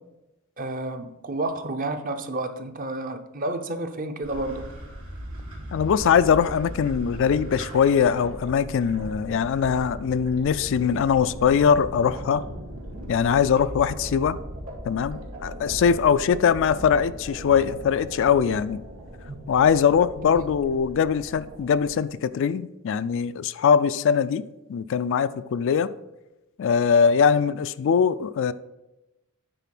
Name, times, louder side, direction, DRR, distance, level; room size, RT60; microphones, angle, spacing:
voice 1, 0.6-4.7 20.3-20.4, right 2 dB, 40° right, 0.7 m, -30 dB
sound 1, 4.2-22.0, equal, 80° right, 2.7 m, -38 dB
voice 2, 5.7-12.4 13.1-14.4 14.8-18.8 19.5-24.4 24.7-25.9 26.6-28.5, left 7 dB, 60° left, 0.3 m, -21 dB
9.1 x 4.2 x 5.9 m
head